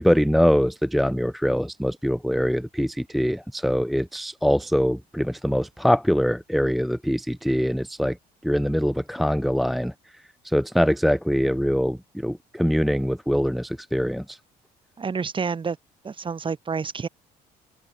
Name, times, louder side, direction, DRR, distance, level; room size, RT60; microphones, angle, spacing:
voice 1, 0.0-8.2 8.4-14.4, equal, ahead, 0.5 m, -23 dB
voice 2, 15.0-15.8 16.0-17.1, right 5 dB, 30° right, 3.0 m, -28 dB
open air
cardioid pair, 110°, 17 cm